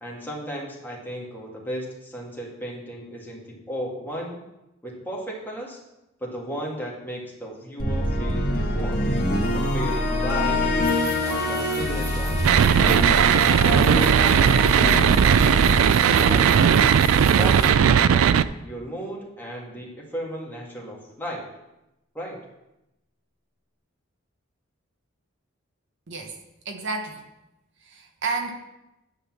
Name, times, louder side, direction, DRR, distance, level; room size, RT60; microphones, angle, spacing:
voice 1, 0.0-4.4 4.8-5.8 6.2-9.0 9.5-10.7 11.2-13.0 13.3-16.5 17.2-21.4 22.1-22.4, equal, 10° left, -3 dB, 2.0 m, -35 dB
sound 1, 7.8-18.0, left 1 dB, 45° left, 1.8 m, -25 dB
sound 2, 10.8-17.7, right 1 dB, 20° right, 1.3 m, -39 dB
sound 3, 12.4-18.4, right 8 dB, 80° right, 0.3 m, -17 dB
voice 2, 26.6-27.2 27.8-28.5, right 4 dB, 60° right, 3 dB, 1.1 m, -30 dB
10.0 x 4.1 x 7.3 m, 0.93 s
head